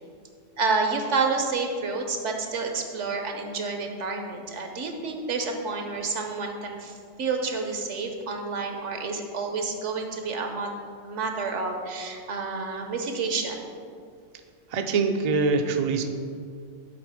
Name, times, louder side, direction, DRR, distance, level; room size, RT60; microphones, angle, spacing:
voice 1, 0.6-10.7 11.0-13.7, right 4 dB, 70° right, 3 dB, 1.2 m, -29 dB
voice 2, 14.7-16.0, right 4 dB, 50° right, 5 dB, 0.5 m, -24 dB
9.6 x 4.5 x 4.9 m, 2.1 s
omnidirectional pair, 1.3 m